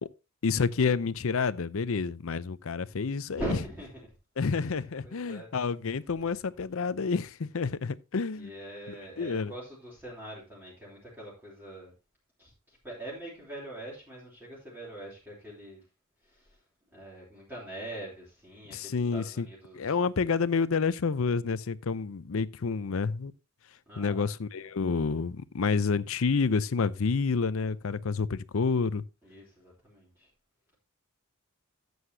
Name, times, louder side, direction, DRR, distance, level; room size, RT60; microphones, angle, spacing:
voice 1, 0.4-3.4 4.4-8.5 8.9-9.5 18.7-19.5 19.7-23.3 24.0-29.0, left 5 dB, 70° left, 0.6 m, -29 dB
voice 2, 3.3-4.1 4.6-4.7 5.0-5.5 8.4-11.9 12.4-15.8 16.2-16.6 16.9-19.9 23.9-24.3 29.2-30.3, right 1 dB, 10° right, 3.2 m, -42 dB
13.0 x 7.9 x 2.7 m
head